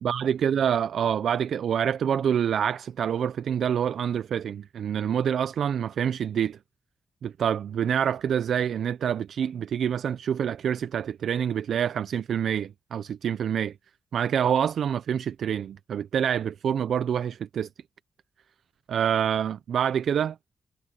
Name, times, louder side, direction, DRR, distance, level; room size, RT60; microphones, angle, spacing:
voice 1, 0.0-6.6 7.2-13.7 14.1-17.7 18.9-20.4, right 8 dB, 70° right, 0.4 m, -26 dB
wide cardioid pair, 170°, 0 cm